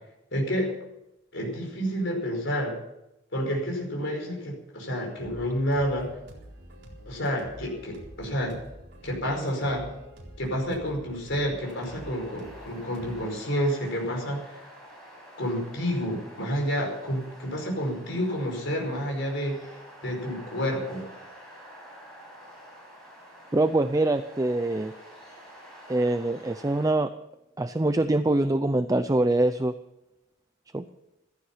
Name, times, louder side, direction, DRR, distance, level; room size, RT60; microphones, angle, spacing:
voice 1, 0.3-0.7 1.3-2.7 3.3-6.1 7.1-8.6 9.0-9.9 10.4-14.6 15.4-19.6 20.0-21.0, equal, 65° left, 1 dB, 5.2 m, -29 dB
sound 1, 5.2-13.5, right 1 dB, 55° right, 4.0 m, -47 dB
sound 2, 11.6-26.9, equal, ahead, 6.9 m, -48 dB
voice 2, 23.5-24.9 25.9-27.1 27.6-29.7 30.7-30.9, right 2 dB, 15° right, 10 dB, 0.5 m, -24 dB
15.5 x 14.5 x 5.7 m, 0.90 s
head